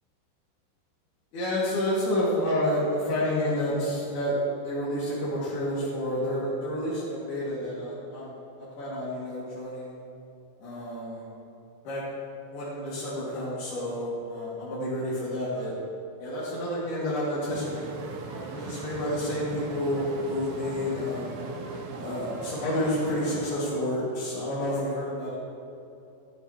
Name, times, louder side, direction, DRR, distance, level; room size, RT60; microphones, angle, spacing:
voice 1, 1.3-4.4 4.6-9.9 10.6-11.2 11.8-12.0 12.5-15.7 16.2-18.0 18.3-21.4 21.9-25.4, left 1 dB, 75° left, -9 dB, 4.2 m, -30 dB
sound 1, 16.5-23.9, right 1 dB, 25° right, 2.2 m, -42 dB
sound 2, 17.5-23.5, right 5 dB, 80° right, 1.8 m, -41 dB
15.0 x 13.5 x 3.1 m, 2.8 s
omnidirectional pair, 4.5 m